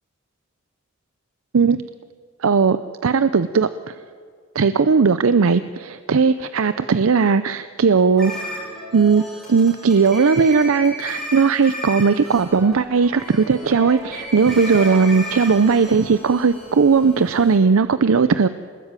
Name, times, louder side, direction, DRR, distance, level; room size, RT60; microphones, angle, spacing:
voice 1, 2.4-2.8 3.0-3.9 4.5-8.6 8.9-9.2 9.5-18.5, right 5 dB, 80° right, 13 dB, 0.6 m, -17 dB
sound 1, 8.2-17.6, equal, ahead, 6.9 m, -34 dB
24.0 x 20.5 x 9.0 m, 2.1 s
head